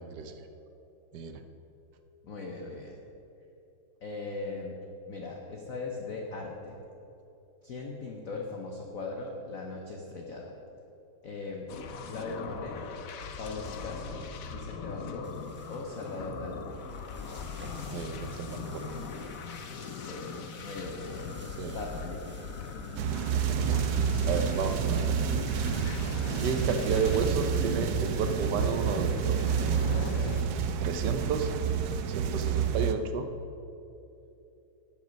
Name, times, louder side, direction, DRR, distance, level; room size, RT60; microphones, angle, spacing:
voice 1, 0.1-0.5 1.1-1.4 17.9-18.9 21.6-21.9 23.3-23.8 24.3-25.1 25.8-25.9 26.4-29.4 30.8-31.5 32.1-33.3, right 5 dB, 65° right, 7 dB, 1.1 m, -32 dB
voice 2, 2.2-2.9 4.0-4.8 5.1-6.8 7.6-10.5 11.2-11.7 12.1-12.8 13.4-14.2 14.5-15.3 15.7-16.6 19.9-21.3 21.6-22.3, left 3 dB, 50° left, 0 dB, 1.1 m, -39 dB
sound 1, 11.7-30.4, left 5 dB, 75° left, 0.7 m, -40 dB
sound 2, 15.2-28.0, equal, 5° right, 0.9 m, -53 dB
sound 3, 23.0-32.9, right 7 dB, 85° right, 0.8 m, -29 dB
12.5 x 8.0 x 5.3 m, 2.9 s
omnidirectional pair, 2.4 m